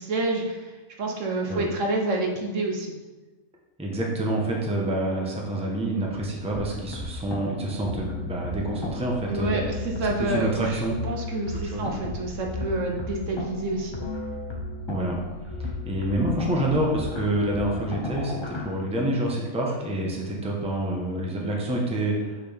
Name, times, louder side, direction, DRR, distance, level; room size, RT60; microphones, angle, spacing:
voice 1, 0.0-2.9 9.3-14.0, right 2 dB, 60° right, 1 dB, 1.1 m, -28 dB
voice 2, 3.8-9.6 10.2-10.9 11.6-11.9 14.9-15.2 15.6-22.4, right 1 dB, 5° right, -1 dB, 0.8 m, -27 dB
sound 1, 6.5-18.7, left 2 dB, 25° left, 0.7 m, -35 dB
6.4 x 6.0 x 3.4 m, 1.2 s
omnidirectional pair, 1.5 m